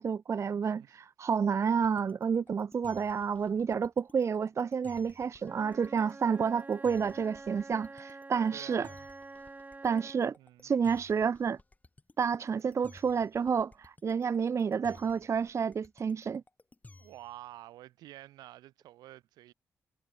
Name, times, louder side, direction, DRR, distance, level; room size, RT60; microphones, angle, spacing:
voice 1, 0.0-8.9 9.8-10.4 10.6-11.6 12.2-16.4, right 6 dB, 45° right, 0.5 m, -30 dB
voice 2, 0.5-1.0 8.5-9.1 10.4-10.7 17.0-19.5, right 15 dB, 90° right, 1.8 m, -50 dB
sound 1, 1.7-17.4, left 2 dB, 25° left, 3.2 m, -56 dB
Wind instrument woodwind instrument, 5.4-10.4, right 3 dB, 25° right, 2.1 m, -48 dB
supercardioid pair, 60°, 7 cm